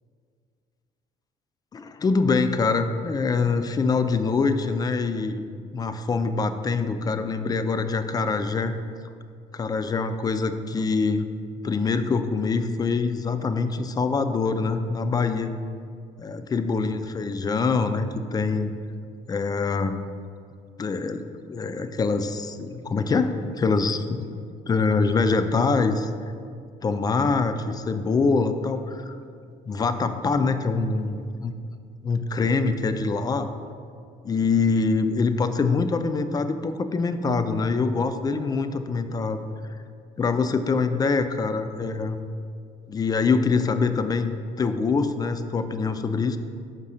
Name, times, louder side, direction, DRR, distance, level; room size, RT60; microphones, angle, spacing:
voice 1, 1.7-5.4 5.7-8.7 9.5-11.3 11.6-15.5 16.2-18.7 19.3-20.0 20.8-24.4 24.7-26.1 26.8-29.2 29.7-31.5 32.0-33.5 34.2-39.4 40.2-42.2 42.9-46.4, left 4 dB, 25° left, 9 dB, 0.3 m, -24 dB
5.2 x 3.7 x 5.6 m, 2.3 s
cardioid pair, 110°, 17 cm